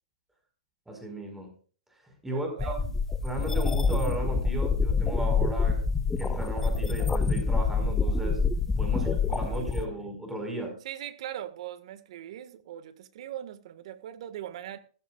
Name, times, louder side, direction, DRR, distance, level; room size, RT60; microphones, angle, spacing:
voice 1, 0.9-1.5 2.2-2.8 3.2-5.8 6.2-8.5 8.8-10.8, right 1 dB, 5° right, 3 dB, 5.0 m, -35 dB
voice 2, 2.3-3.0 8.9-10.0 10.8-14.8, right 11 dB, 60° right, 12 dB, 1.7 m, -41 dB
sound 1, 2.6-9.9, left 4 dB, 10° left, 0.9 m, -26 dB
15.5 x 13.5 x 2.4 m, 0.40 s
hypercardioid pair, 125°, 4 cm